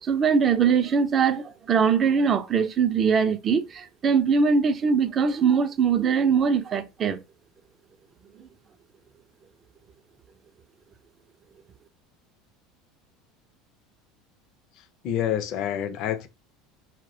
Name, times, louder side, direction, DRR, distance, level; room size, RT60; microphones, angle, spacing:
voice 1, 0.0-7.2 8.4-8.5, right 6 dB, 30° right, 0.4 m, -22 dB
voice 2, 15.0-16.3, left 10 dB, 55° left, 0.4 m, -27 dB
2.3 x 2.1 x 2.6 m
supercardioid pair, 125°, 0 cm